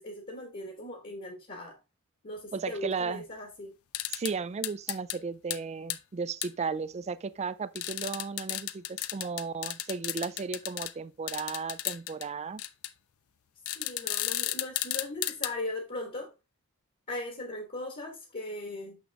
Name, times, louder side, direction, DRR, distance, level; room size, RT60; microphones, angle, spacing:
voice 1, 0.0-1.8 2.2-3.7 13.7-16.3 17.1-19.0, left 2 dB, 40° left, 1.3 m, -38 dB
voice 2, 2.5-3.2 4.1-12.6, right 5 dB, 30° right, 0.3 m, -35 dB
sound 1, 3.9-4.3 4.6-5.2 5.5-5.6 5.9-6.0 6.4-6.5 7.8-10.9 11.3-12.3 12.6-12.9 13.7-15.5, left 14 dB, 70° left, 0.5 m, -33 dB
6.2 x 6.2 x 3.4 m
head